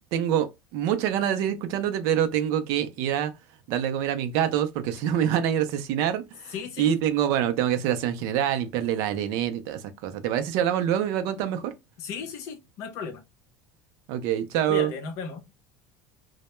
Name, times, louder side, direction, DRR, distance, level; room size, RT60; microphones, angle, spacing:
voice 1, 0.1-3.3 3.7-11.7 14.1-14.9, right 10 dB, 60° right, 0.4 m, -26 dB
voice 2, 6.5-7.0 12.0-13.2 14.7-15.4, left 5 dB, 50° left, 0.6 m, -35 dB
2.1 x 2.0 x 3.0 m
cardioid pair, 155°, 6 cm